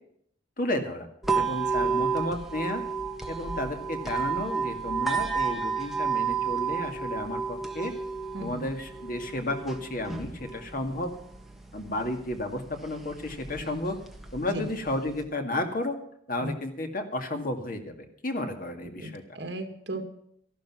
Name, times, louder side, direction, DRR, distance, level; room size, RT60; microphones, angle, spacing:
voice 1, 0.6-1.1 1.3-2.8 3.3-7.9 8.4-11.1 11.7-14.0 14.3-16.0 16.3-17.9 18.2-19.2, left 1 dB, 50° left, 5 dB, 2.2 m, -32 dB
sound 1, 1.2-15.2, right 5 dB, ahead, 1.6 m, -32 dB
voice 2, 8.3-8.7 14.5-14.7 16.4-16.5 19.0-20.0, right 1 dB, 70° right, 7 dB, 2.2 m, -37 dB
13.5 x 12.0 x 6.1 m, 0.70 s
head